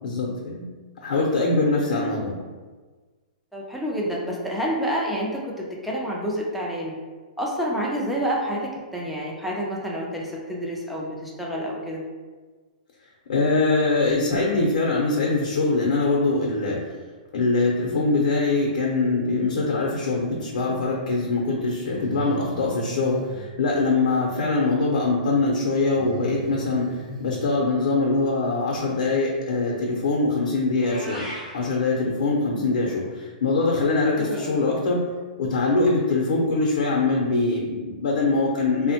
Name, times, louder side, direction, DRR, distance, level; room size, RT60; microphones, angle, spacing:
voice 1, 0.0-0.7 1.0-2.4 13.3-16.9 17.3-31.3 31.5-35.0 35.4-38.9, left 3 dB, 70° left, -2 dB, 0.6 m, -23 dB
voice 2, 3.5-6.9 7.4-12.0 22.2-22.4 32.5-32.8 34.2-34.6, equal, ahead, -4 dB, 0.4 m, -29 dB
Breathing, 22.0-23.5 25.9-27.4, right 2 dB, 50° right, 0.7 m, -37 dB
Meow, 30.8-31.5, equal, 30° right, 1.0 m, -36 dB
3.4 x 2.1 x 2.8 m, 1.4 s
hypercardioid pair, 155°, 5 cm